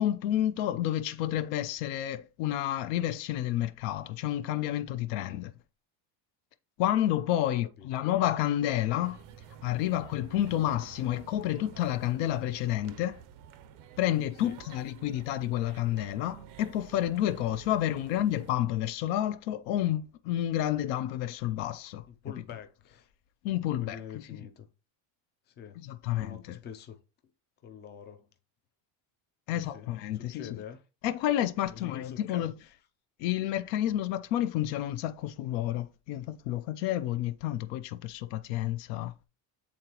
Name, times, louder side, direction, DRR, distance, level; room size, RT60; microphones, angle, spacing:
voice 1, 0.0-5.5 6.8-9.2 9.6-13.2 14.0-22.0 23.4-24.4 25.8-26.6 29.5-30.6 31.0-32.5 33.2-39.1, left 12 dB, 65° left, 0.6 m, -30 dB
voice 2, 7.5-7.9 14.4-14.5 22.1-23.1 23.7-24.7 25.5-25.8 26.1-27.0 27.6-28.3 29.5-29.9 30.1-30.8 31.7-32.5, left 8 dB, 25° left, 0.4 m, -45 dB
sound 1, 9.0-18.5, right 8 dB, 45° right, 0.5 m, -50 dB
8.5 x 3.9 x 2.9 m
cardioid pair, 175°, 49 cm